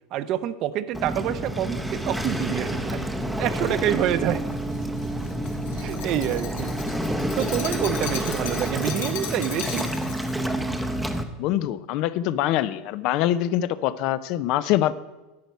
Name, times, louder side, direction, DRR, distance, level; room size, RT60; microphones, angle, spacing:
voice 1, 0.1-3.0 3.4-4.4 5.8-6.8 7.4-9.9, right 11 dB, 45° right, 14 dB, 0.5 m, -27 dB
Waves surf, 0.9-11.2, equal, ahead, 0.7 m, -29 dB
sound 1, 1.7-8.8, right 5 dB, 65° right, 1.2 m, -41 dB
Glass, 4.1-10.4, left 8 dB, 90° left, 1.8 m, -37 dB
voice 2, 11.4-14.9, left 12 dB, 50° left, 16 dB, 0.5 m, -24 dB
10.5 x 8.0 x 5.4 m, 1.1 s
supercardioid pair, 155°, 0 cm